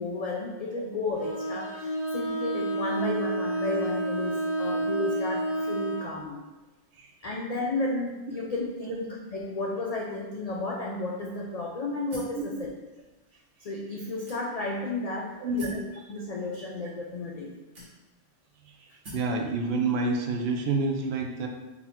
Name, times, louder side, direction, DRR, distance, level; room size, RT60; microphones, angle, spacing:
voice 1, 0.0-6.4 7.2-12.7 13.6-15.7 16.1-17.9, left 2 dB, 70° left, -1 dB, 0.3 m, -33 dB
Bowed string instrument, 1.2-6.1, right 1 dB, 45° left, 1.0 m, -30 dB
sound 1, 12.1-12.5 13.2-13.3 14.3-14.8 15.6-15.9 16.8-16.9 17.7-18.3 19.0-19.4, left 1 dB, 90° right, 1.6 m, -44 dB
voice 2, 15.4-15.8 19.1-21.5, right 3 dB, 70° right, 2 dB, 0.8 m, -28 dB
4.0 x 2.4 x 4.2 m, 1.1 s
omnidirectional pair, 1.2 m